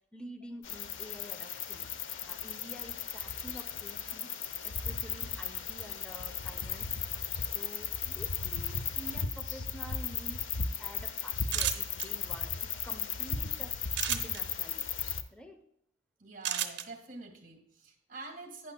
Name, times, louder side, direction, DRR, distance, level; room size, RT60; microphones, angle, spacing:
voice 1, 0.1-1.9 2.2-4.3 4.6-6.9 7.2-14.8 15.3-15.6, equal, 5° left, 6 dB, 0.6 m, -49 dB
sound 1, 0.6-15.2, left 6 dB, 80° left, 0.6 m, -36 dB
sound 2, 11.5-12.1 13.9-14.4 16.4-16.8, right 10 dB, 65° right, 0.7 m, -31 dB
voice 2, 16.2-18.7, right 3 dB, 45° right, 5 dB, 1.7 m, -46 dB
11.5 x 9.4 x 2.2 m, 0.72 s
head